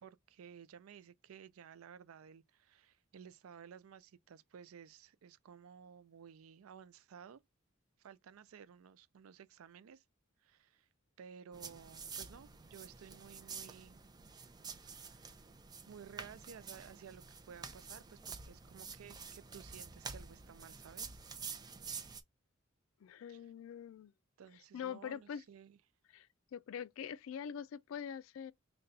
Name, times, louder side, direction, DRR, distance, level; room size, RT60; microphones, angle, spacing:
voice 1, 0.0-7.4 8.0-10.0 10.4-10.9 11.2-14.0 14.7-15.4 15.9-21.2 23.3-23.5 24.4-25.8, right 7 dB, 90° right, 0.4 m, -55 dB
sound 1, 11.5-22.2, right 5 dB, 20° right, 0.4 m, -49 dB
voice 2, 23.0-24.1 24.7-25.4 26.1-28.5, left 8 dB, 70° left, 0.3 m, -44 dB
4.0 x 2.2 x 3.8 m
head